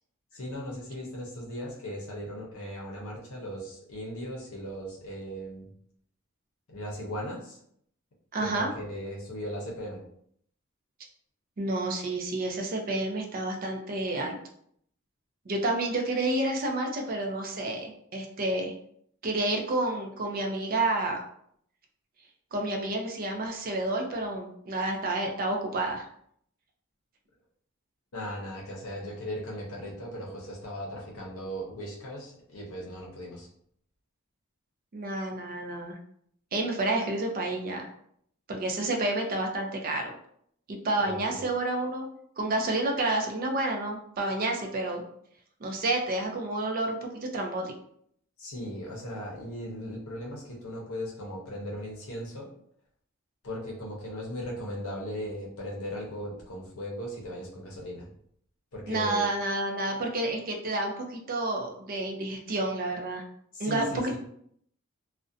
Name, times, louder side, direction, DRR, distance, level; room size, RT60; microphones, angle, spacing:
voice 1, 0.3-5.7 6.7-7.6 8.4-10.0 28.1-33.5 41.0-41.4 48.4-52.5 53.4-58.1 58.7-59.3 63.5-64.2, equal, 75° left, -3 dB, 0.6 m, -37 dB
voice 2, 8.3-8.7 11.6-14.4 15.5-18.7 19.2-21.2 22.5-26.1 34.9-36.0 36.5-37.9 38.5-40.1 40.7-42.1 42.4-45.0 45.6-47.7 58.9-63.2 63.6-64.2, right 2 dB, 45° right, 2 dB, 0.4 m, -29 dB
2.4 x 2.1 x 2.5 m, 0.67 s
head